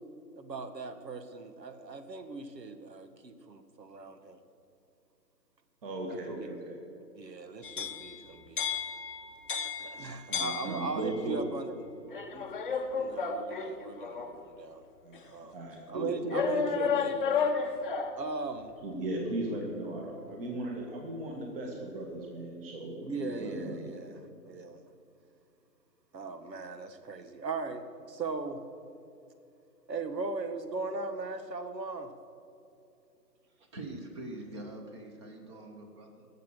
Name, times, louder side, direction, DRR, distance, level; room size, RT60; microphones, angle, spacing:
voice 1, 0.4-4.4 6.1-6.5 7.1-8.6 9.8-11.9 12.3-12.5 13.0-14.8 15.2-15.5 15.9-17.6 18.2-18.7 23.0-24.2 24.4-24.8 26.1-28.6 29.9-32.1, right 4 dB, 85° right, 9 dB, 1.5 m, -38 dB
voice 2, 5.8-6.8 10.3-11.4 15.0-16.7 18.8-23.8, right 1 dB, 35° right, 0 dB, 1.9 m, -37 dB
sound 1, 7.6-11.3 12.1-14.4 15.1-15.2 16.3-18.3, left 6 dB, 30° left, 0.7 m, -33 dB
voice 3, 33.6-36.3, right 2 dB, 15° right, 4 dB, 1.0 m, -44 dB
19.0 x 7.5 x 6.3 m, 2.7 s
hypercardioid pair, 155°, 49 cm